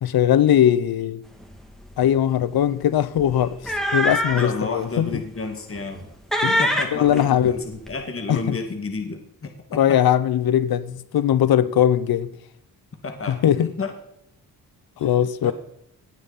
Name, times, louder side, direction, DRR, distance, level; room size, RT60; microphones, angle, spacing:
voice 1, 0.0-1.2 2.0-5.2 6.4-6.6 6.9-7.5 8.3-8.6 9.8-12.3 13.3-13.7 15.0-15.5, left 10 dB, 70° left, 0.7 m, -20 dB
sound 1, 1.4-1.6 1.9-2.1 3.2-4.6 5.1-5.2 5.7-6.1 6.3-7.9, equal, ahead, 2.3 m, -24 dB
voice 2, 4.3-6.1 6.6-10.0 13.0-13.4 13.8-13.9 15.0-15.2 15.4-15.5, left 3 dB, 35° left, 1.9 m, -31 dB
18.0 x 9.1 x 4.1 m
cardioid pair, 90°, 37 cm